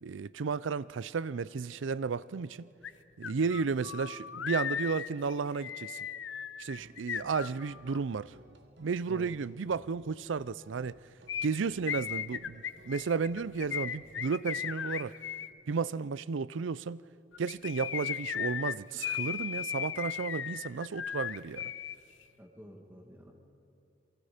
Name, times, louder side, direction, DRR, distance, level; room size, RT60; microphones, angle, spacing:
voice 1, 0.0-2.7 3.2-6.0 6.6-8.3 8.8-11.0 11.4-15.1 15.7-17.0 17.4-21.7, right 5 dB, 85° right, 0.5 m, -33 dB
sound 1, 2.8-2.9 3.2-8.0 11.3-15.5 17.3-22.0 22.2-22.3, left 9 dB, 85° left, 0.6 m, -36 dB
sound 2, 6.8-14.2, right 2 dB, 65° right, 1.5 m, -59 dB
voice 2, 22.4-23.3, equal, 10° right, 1.7 m, -50 dB
29.5 x 23.0 x 5.1 m
head